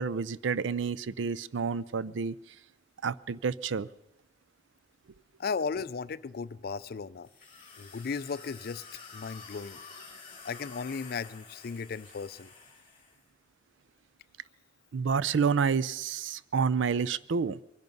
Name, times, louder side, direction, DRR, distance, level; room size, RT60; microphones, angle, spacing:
voice 1, 0.0-2.3 3.0-3.9 14.9-17.6, right 5 dB, 75° right, 17 dB, 0.4 m, -29 dB
voice 2, 5.4-7.3 7.8-8.8 9.1-9.8 10.4-12.5, left 5 dB, 50° left, 17 dB, 0.4 m, -35 dB
sound 1, 7.2-13.2, left 5 dB, 30° left, 4.2 m, -50 dB
22.5 x 10.5 x 5.4 m, 0.91 s
head